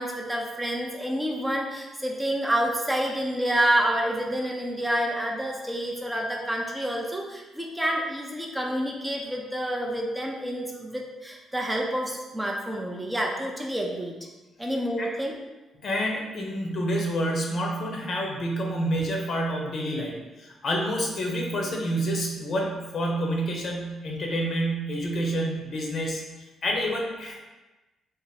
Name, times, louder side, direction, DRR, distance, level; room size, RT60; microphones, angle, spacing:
voice 1, 0.0-14.2 14.6-15.4, right 1 dB, 10° right, 0 dB, 0.5 m, -28 dB
voice 2, 15.8-26.2 26.6-27.4, equal, 55° left, 0 dB, 0.7 m, -28 dB
3.4 x 2.0 x 4.1 m, 1.1 s
cardioid pair, 90°, 0 cm